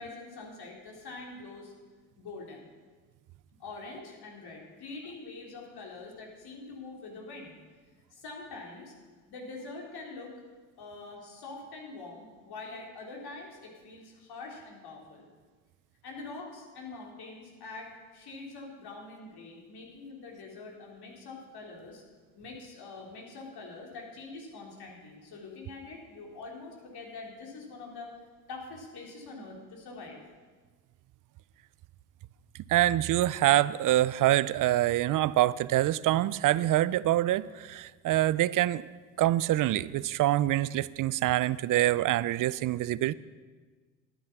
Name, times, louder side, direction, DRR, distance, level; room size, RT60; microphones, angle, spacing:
voice 1, 0.0-1.7 2.2-2.7 3.6-7.5 8.1-8.9 9.3-10.3 10.8-15.3 16.0-22.0 22.3-28.1 28.5-30.2, left 3 dB, 60° left, 0 dB, 3.4 m, -44 dB
voice 2, 32.7-38.8 39.2-43.1, right 14 dB, 50° right, 19 dB, 0.5 m, -25 dB
12.0 x 9.4 x 5.9 m, 1.4 s
supercardioid pair, 70°, 43 cm